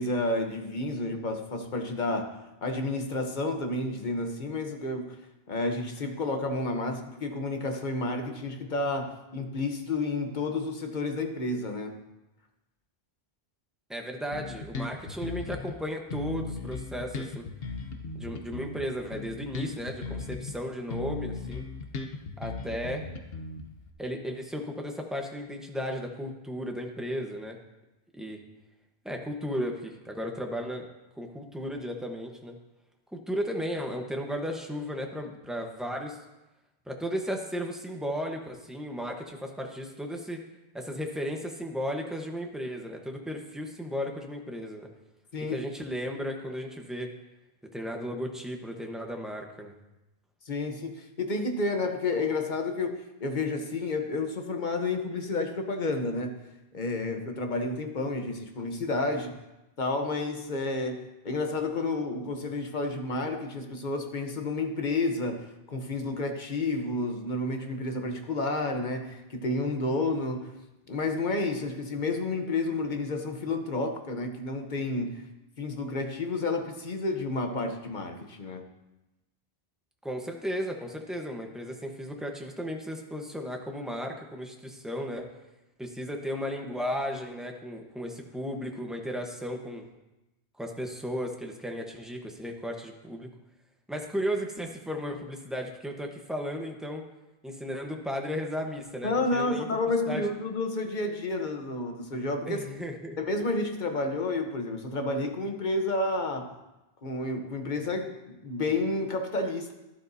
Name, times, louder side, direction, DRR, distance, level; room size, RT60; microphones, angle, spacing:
voice 1, 0.0-5.2 5.5-12.0 45.3-45.6 50.4-56.3 56.7-59.3 59.8-70.6 70.9-75.2 75.6-78.7 99.0-102.6 103.2-106.5 107.0-109.7, left 2 dB, 50° left, 5 dB, 1.1 m, -30 dB
voice 2, 13.9-17.5 18.1-21.6 22.4-23.1 24.0-27.6 28.1-28.4 29.0-30.9 31.2-32.6 33.1-36.2 36.9-40.4 40.7-44.9 45.5-47.1 47.7-49.7 80.0-85.2 85.8-89.9 90.6-93.3 93.9-97.1 97.4-99.7 100.1-100.3 102.5-103.2, equal, ahead, 2 dB, 1.0 m, -35 dB
Bass guitar, 14.3-15.8 16.1-20.6 20.9-23.9, left 3 dB, 70° left, 1.1 m, -37 dB
12.0 x 12.0 x 2.7 m, 0.98 s
omnidirectional pair, 1.0 m